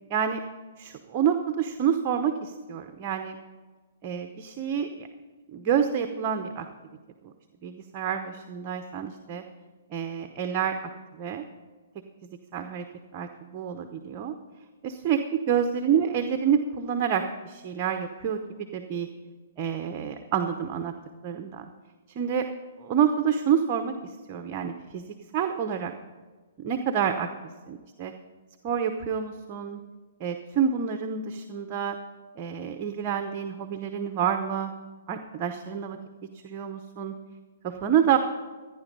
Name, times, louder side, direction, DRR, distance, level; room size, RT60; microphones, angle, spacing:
voice 1, 0.1-0.4 0.8-3.4 4.0-5.1 5.5-6.7 7.2-7.3 7.6-9.4 9.9-10.7 11.1-11.4 12.5-12.8 13.1-14.3 14.8-19.1 19.6-20.9 21.2-21.6 22.1-22.5 22.8-25.0 25.3-25.9 26.6-27.3 27.7-28.1 28.6-29.8 30.2-32.0 32.4-34.7 35.1-36.0 36.4-37.1 37.6-38.2, right 8 dB, 30° right, 7 dB, 0.8 m, -28 dB
14.5 x 10.0 x 5.3 m, 1.3 s
hypercardioid pair, 145°, 0 cm